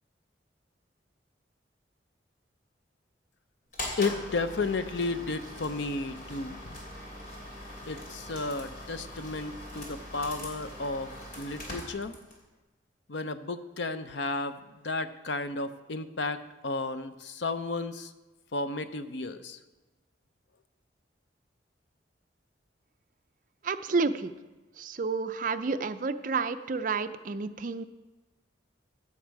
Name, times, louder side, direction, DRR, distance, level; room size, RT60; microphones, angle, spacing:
sound 1, 3.7-12.4, left 1 dB, 50° left, 2.7 m, -42 dB
voice 1, 4.0-6.8 7.9-12.2 13.1-14.6 14.8-18.1 18.5-19.6, left 3 dB, 75° left, 11 dB, 0.7 m, -33 dB
voice 2, 23.6-24.3 24.8-27.8, right 4 dB, 45° right, 10 dB, 0.5 m, -30 dB
15.5 x 7.3 x 4.7 m, 1.1 s
head